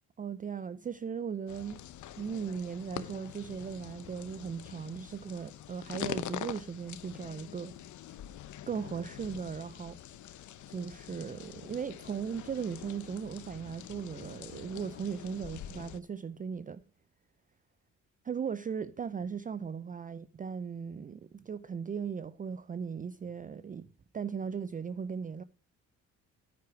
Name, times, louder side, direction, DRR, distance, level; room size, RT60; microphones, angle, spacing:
voice 1, 0.2-1.8 2.2-7.7 8.7-10.0 10.7-16.8 18.2-23.9 24.1-25.4, right 6 dB, 25° right, 0.5 m, -38 dB
sound 1, 1.5-16.0, left 11 dB, 75° left, 0.9 m, -45 dB
9.5 x 9.5 x 4.9 m
cardioid pair, 90°, 30 cm